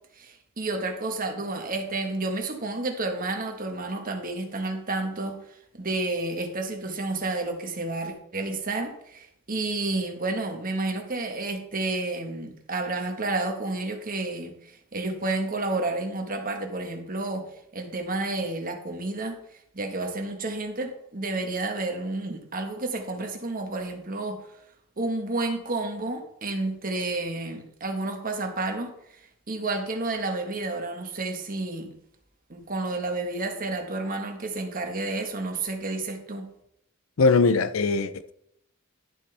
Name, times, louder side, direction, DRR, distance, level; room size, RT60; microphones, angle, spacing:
voice 1, 0.2-5.4 5.8-17.4 17.7-19.4 19.7-24.4 25.0-29.2 29.5-31.9 32.5-36.5, right 2 dB, 45° right, 1.5 m, -30 dB
voice 2, 37.2-38.3, left 4 dB, 85° left, 0.6 m, -21 dB
11.5 x 7.3 x 3.4 m
head